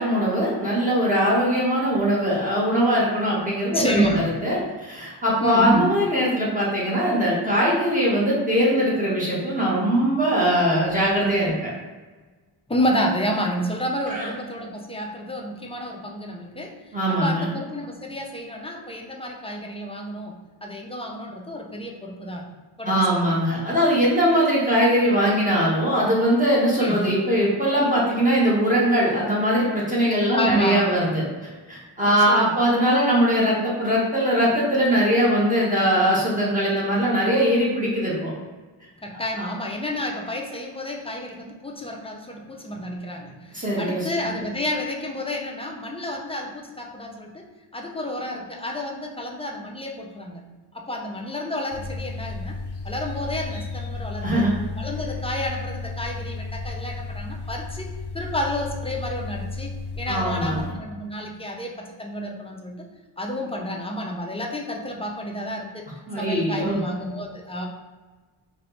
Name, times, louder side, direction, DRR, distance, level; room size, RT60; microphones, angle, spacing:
voice 1, 0.0-4.0 4.4-11.7 14.1-14.3 16.9-17.5 22.8-31.2 31.7-38.3 39.4-39.5 43.5-44.1 54.2-54.5 60.1-60.7 66.1-66.8, equal, 15° right, -6 dB, 1.2 m, -21 dB
voice 2, 3.7-4.4 5.4-6.0 12.7-22.4 22.8-23.4 26.8-27.1 30.3-30.9 32.0-32.6 39.0-47.5 47.7-50.4 50.7-54.5 54.8-62.9 63.2-65.8 66.2-67.7, equal, 15° left, 0 dB, 0.4 m, -30 dB
sound 1, 51.7-60.7, left 3 dB, 55° left, 0.7 m, -33 dB
4.2 x 2.6 x 3.1 m, 1.3 s
wide cardioid pair, 120°, 49 cm